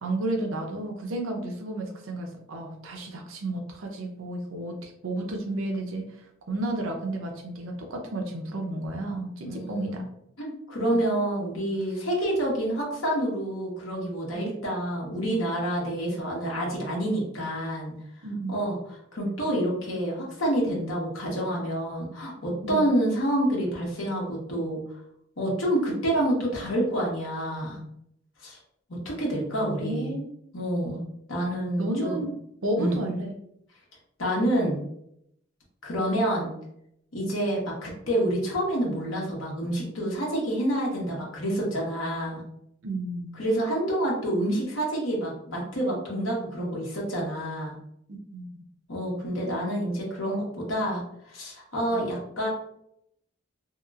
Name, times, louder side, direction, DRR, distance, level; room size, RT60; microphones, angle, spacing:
voice 1, 0.0-10.0 10.8-11.0 14.3-14.5 18.2-18.7 22.6-22.8 29.6-30.3 31.8-32.3 32.6-33.3 42.8-43.4 48.3-48.5 51.9-52.0, right 1 dB, 80° right, 2 dB, 0.6 m, -32 dB
voice 2, 9.4-10.0 10.4-17.9 18.5-18.8 19.1-24.8 25.4-27.8 28.4-28.6 29.0-30.1 30.5-32.2 32.8-33.0 34.2-34.8 35.8-36.5 37.1-42.4 43.4-47.8 48.9-52.5, right 1 dB, 75° left, -3 dB, 1.0 m, -28 dB
2.9 x 2.8 x 2.4 m, 0.74 s
head